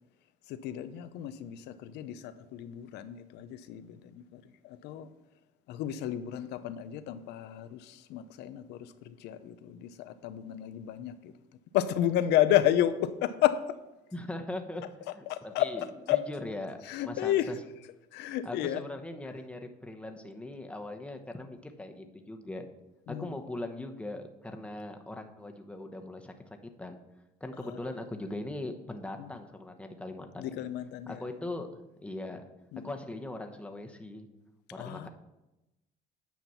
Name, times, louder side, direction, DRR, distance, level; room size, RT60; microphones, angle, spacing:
voice 1, 0.5-5.1 5.7-11.3 11.7-13.8 14.8-16.3 16.8-18.8 23.1-23.4 27.6-28.3 29.2-29.4 30.4-31.3 32.7-32.9 34.8-35.1, left 12 dB, 85° left, 12 dB, 0.7 m, -32 dB
voice 2, 14.1-14.8 15.1-17.6 18.4-22.7 23.1-27.0 27.4-30.6 31.1-31.7 32.0-32.4 32.8-34.3 34.7-35.1, left 2 dB, 5° left, 4 dB, 1.0 m, -40 dB
9.4 x 5.8 x 5.6 m, 0.97 s
cardioid pair, 110°, 17 cm